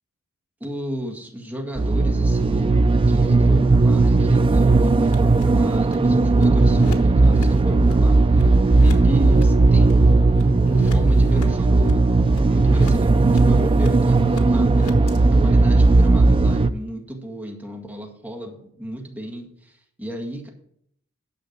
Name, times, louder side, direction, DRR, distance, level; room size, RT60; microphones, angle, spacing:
voice 1, 0.6-10.2 10.7-20.5, equal, 5° right, 0 dB, 1.8 m, -33 dB
sound 1, 1.8-16.7, right 3 dB, 25° right, 0.3 m, -16 dB
sound 2, 3.1-15.2, left 1 dB, 90° left, 1.3 m, -39 dB
sound 3, 3.2-16.3 16.6-16.7, equal, 75° right, 2.7 m, -39 dB
9.5 x 6.3 x 6.5 m, 0.71 s
head